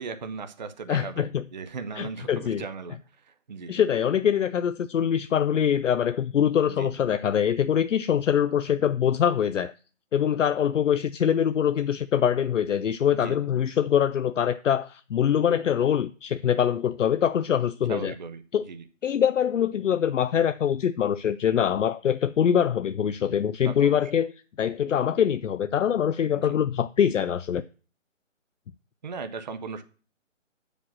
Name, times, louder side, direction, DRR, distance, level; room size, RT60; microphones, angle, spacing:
voice 1, 0.0-3.0 3.3-3.8 6.6-6.9 13.1-13.5 17.9-18.8 23.6-24.0 26.4-26.6 29.0-29.8, right 5 dB, 35° right, 0.6 m, -37 dB
voice 2, 0.9-1.4 2.0-2.6 3.7-9.7 10.1-18.1 18.5-18.7 19.0-24.3 24.6-27.6, left 9 dB, 70° left, 0.5 m, -24 dB
7.6 x 5.1 x 7.2 m
figure-of-eight pair, 155°, 39 cm